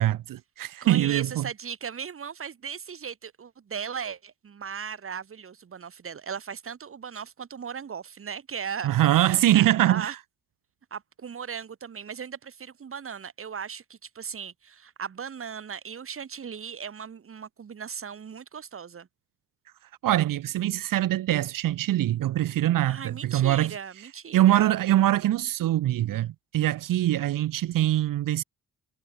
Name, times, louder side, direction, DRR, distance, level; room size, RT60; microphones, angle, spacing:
voice 1, 0.0-1.4 8.8-10.2 20.0-23.7 24.3-28.4, right 13 dB, 90° right, 0.8 m, -23 dB
voice 2, 0.8-10.1 10.9-19.1 22.8-24.7, right 7 dB, 40° right, 1.6 m, -37 dB
wide cardioid pair, 125°, 32 cm